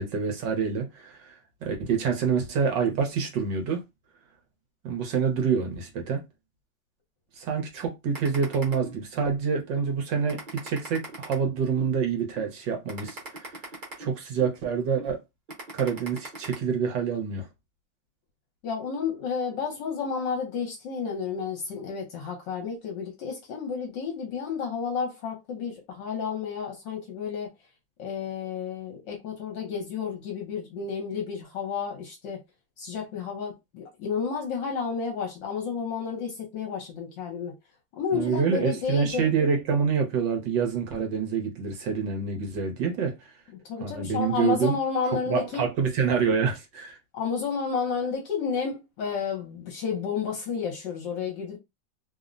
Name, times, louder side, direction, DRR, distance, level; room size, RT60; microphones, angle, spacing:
voice 1, 0.0-1.3 1.6-3.8 4.8-6.2 7.4-13.5 14.0-15.2 15.7-17.5 38.1-43.3 43.8-44.8 45.3-47.0, right 6 dB, 70° right, 1.5 m, -27 dB
sound 1, 8.1-9.3 9.8-9.9 10.3-11.9 12.4-12.5 12.9-14.5 15.0-15.1 15.5-16.5, right 2 dB, 35° right, 0.9 m, -40 dB
voice 2, 18.6-27.5 28.0-32.4 32.8-37.5 37.9-39.2 43.5-45.6 47.1-51.6, left 6 dB, 70° left, 1.5 m, -31 dB
3.5 x 2.1 x 2.5 m
omnidirectional pair, 2.1 m